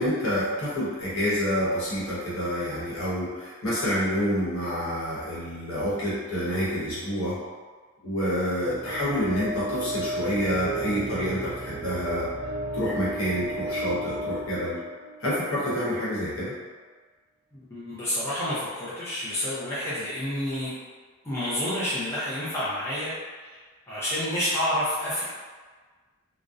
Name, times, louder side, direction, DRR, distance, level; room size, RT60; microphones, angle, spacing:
voice 1, 0.0-7.4 8.0-12.3 12.7-14.8 15.2-16.5, equal, 70° left, -9 dB, 0.9 m, -28 dB
sound 1, 8.6-15.6, right 1 dB, 60° right, 0.3 m, -34 dB
voice 2, 17.5-20.7 21.2-23.6 23.9-25.2, left 1 dB, 10° left, -11 dB, 0.5 m, -29 dB
2.6 x 2.0 x 2.3 m, 1.4 s
head